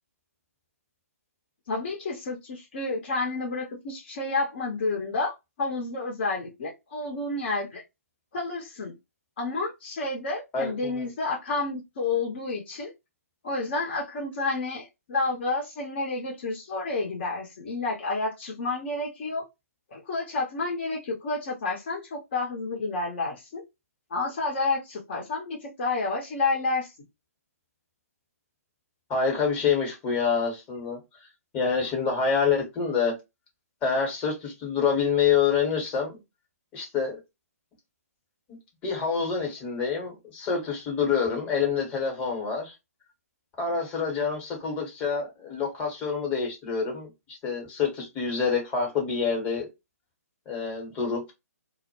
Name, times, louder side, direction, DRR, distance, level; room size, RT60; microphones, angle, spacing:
voice 1, 1.7-7.8 8.3-9.0 9.4-12.9 13.4-19.4 19.9-23.6 24.1-26.9, left 3 dB, 40° left, 0.7 m, -30 dB
voice 2, 10.5-11.1 29.1-31.0 31.5-33.1 33.8-36.2 36.7-37.2 38.8-42.7 43.6-47.1 47.4-49.7 50.5-51.3, left 6 dB, 15° left, 1.0 m, -27 dB
2.1 x 2.0 x 2.9 m
figure-of-eight pair, 130°, 9 cm